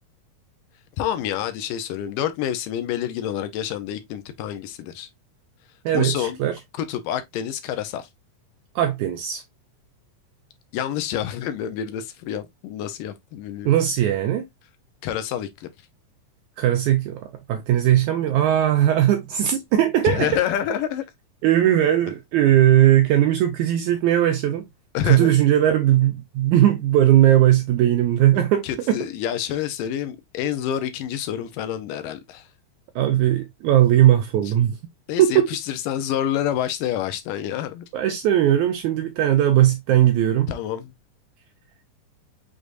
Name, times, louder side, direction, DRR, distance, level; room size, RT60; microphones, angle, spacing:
voice 1, 1.0-5.1 5.9-6.4 6.8-8.1 10.7-13.8 15.0-15.7 20.0-21.1 24.9-25.4 28.4-32.5 34.5-34.6 35.1-37.9 40.5-40.9, left 10 dB, 80° left, 2.3 m, -28 dB
voice 2, 5.8-6.5 8.7-9.4 13.6-14.5 16.6-20.3 21.4-24.6 25.0-29.0 32.9-34.8 35.2-35.5 37.9-40.5, right 12 dB, 85° right, 1.7 m, -19 dB
6.4 x 3.4 x 2.5 m
omnidirectional pair, 4.0 m